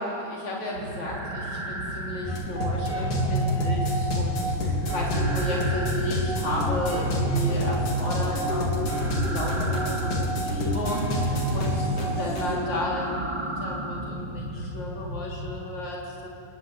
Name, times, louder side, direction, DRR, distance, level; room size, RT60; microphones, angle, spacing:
voice 1, 0.0-16.3, left 2 dB, 70° left, -4 dB, 5.1 m, -33 dB
sound 1, 0.7-15.6, right 1 dB, 40° right, 3.0 m, -35 dB
sound 2, 2.2-12.5, equal, 90° left, 5.2 m, -27 dB
28.0 x 22.5 x 9.2 m, 2.8 s
omnidirectional pair, 3.4 m